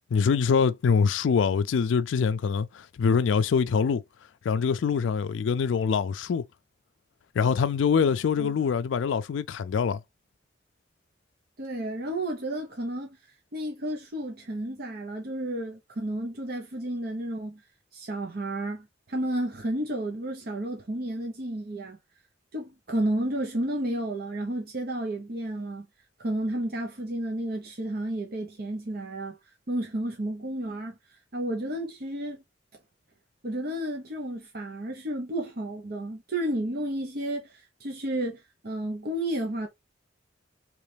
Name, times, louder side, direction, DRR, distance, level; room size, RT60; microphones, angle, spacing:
voice 1, 0.1-4.0 4.4-6.4 7.4-10.0, left 6 dB, 90° left, 0.4 m, -24 dB
voice 2, 11.6-13.2 13.5-17.6 17.9-22.0 22.5-25.9 26.2-29.4 29.7-31.0 31.3-32.4 33.4-39.7, right 1 dB, 55° right, 0.9 m, -32 dB
4.0 x 3.0 x 3.3 m
head